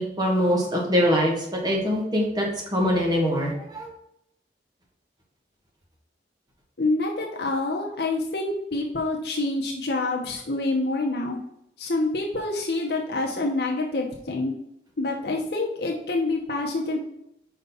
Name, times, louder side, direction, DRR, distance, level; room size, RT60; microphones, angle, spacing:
voice 1, 0.0-2.5 2.7-3.9, equal, 25° right, -1 dB, 1.6 m, -23 dB
voice 2, 6.8-11.4 11.8-14.5 15.0-17.0, left 2 dB, 65° left, 0 dB, 0.9 m, -27 dB
5.2 x 4.0 x 5.5 m, 0.76 s
head